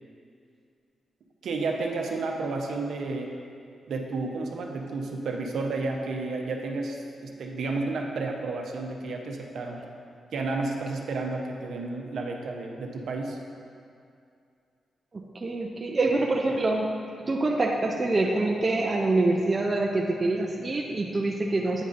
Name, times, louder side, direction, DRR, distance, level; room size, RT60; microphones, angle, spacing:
voice 1, 1.4-3.3 3.9-9.8 10.3-13.4, right 3 dB, 65° right, 1 dB, 0.6 m, -31 dB
voice 2, 15.3-21.8, right 2 dB, 25° right, 0 dB, 0.3 m, -25 dB
8.8 x 5.3 x 2.5 m, 2.4 s
wide cardioid pair, 180°, 0 cm